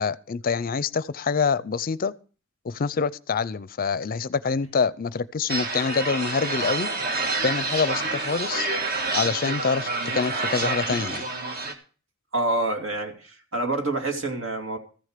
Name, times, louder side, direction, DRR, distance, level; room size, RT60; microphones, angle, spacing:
voice 1, 0.0-2.1 2.6-6.9 7.4-8.7 9.1-11.2, left 5 dB, 45° left, 0.5 m, -26 dB
sound 1, 5.5-11.7, right 3 dB, 50° right, 1.7 m, -28 dB
voice 2, 12.3-14.8, right 2 dB, 70° right, 2.5 m, -27 dB
14.5 x 6.6 x 6.6 m
head